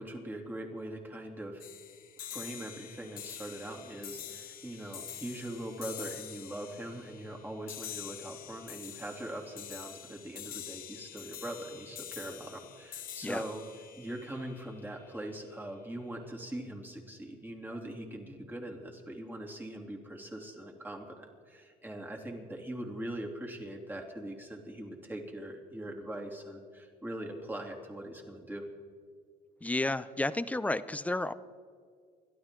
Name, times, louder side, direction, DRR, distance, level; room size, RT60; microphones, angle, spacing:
voice 1, 0.0-1.7 2.2-13.6 13.9-28.7, right 1 dB, 10° right, 0 dB, 3.0 m, -41 dB
sound 1, 1.6-15.1, left 9 dB, 60° left, 1.3 m, -46 dB
voice 2, 29.6-31.3, left 2 dB, 10° left, 14 dB, 0.6 m, -31 dB
29.5 x 12.5 x 3.8 m, 2.1 s
cardioid pair, 110°, 17 cm